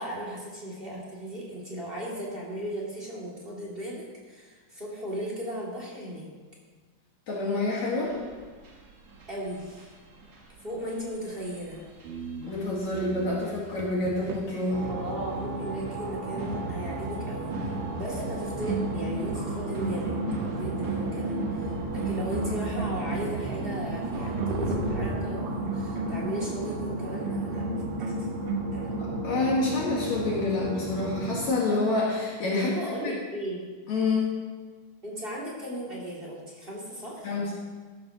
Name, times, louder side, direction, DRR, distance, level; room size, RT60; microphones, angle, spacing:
voice 1, 0.0-6.3 9.3-9.9 10.6-11.8 14.9-20.1 20.4-27.6 28.0-28.3 28.7-28.9 32.5-33.7 35.0-37.3, right 1 dB, 20° right, -4 dB, 2.3 m, -36 dB
voice 2, 7.3-8.1 12.4-14.9 29.0-32.7 33.0-33.1 33.9-34.3 37.2-37.5, left 2 dB, 60° left, -4 dB, 2.9 m, -27 dB
sound 1, 8.0-24.7, right 3 dB, 45° right, 1.4 m, -42 dB
sound 2, 12.0-14.7 18.3-18.4 18.7-23.8 24.4-26.7 27.3-29.1, right 2 dB, 90° right, 2.9 m, -35 dB
sound 3, 14.7-31.5, right 2 dB, 70° right, 2.8 m, -33 dB
14.5 x 12.5 x 2.9 m, 1.4 s
omnidirectional pair, 3.7 m